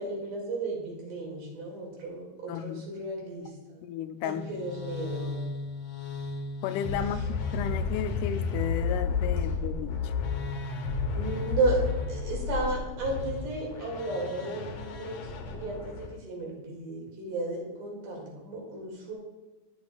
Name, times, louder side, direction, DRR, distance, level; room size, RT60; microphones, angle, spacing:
voice 1, 0.0-3.8 4.2-5.3 11.1-19.1, right 2 dB, 85° right, -2 dB, 3.7 m, -33 dB
voice 2, 2.5-2.8 3.8-4.7 6.6-10.1, left 9 dB, 90° left, 11 dB, 2.1 m, -34 dB
sound 1, 4.3-16.1, left 5 dB, 70° left, 1.8 m, -33 dB
13.5 x 6.6 x 2.3 m, 1.2 s
omnidirectional pair, 3.5 m